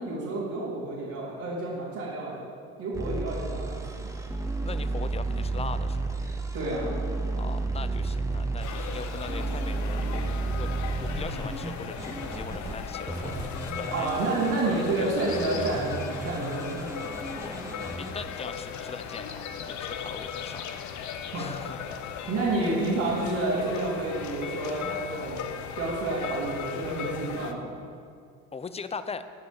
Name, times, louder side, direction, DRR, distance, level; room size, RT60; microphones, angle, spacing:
voice 1, 0.0-2.4 2.8-4.1 6.5-6.9 13.9-16.9 21.3-21.5 22.3-25.5 25.8-27.7, right 2 dB, 70° right, -9 dB, 3.5 m, -29 dB
sound 1, 2.9-12.7 13.1-18.1, right 3 dB, 10° right, 1.4 m, -32 dB
voice 2, 4.6-6.2 7.4-10.7 11.0-13.3 13.6-14.1 14.6-15.6 17.4-17.6 18.0-22.1 28.5-29.2, left 5 dB, 20° left, 11 dB, 0.7 m, -40 dB
sound 2, 8.6-27.5, left 7 dB, 55° left, 1.0 m, -37 dB
12.0 x 5.5 x 8.5 m, 2.2 s
supercardioid pair, 85°, 34 cm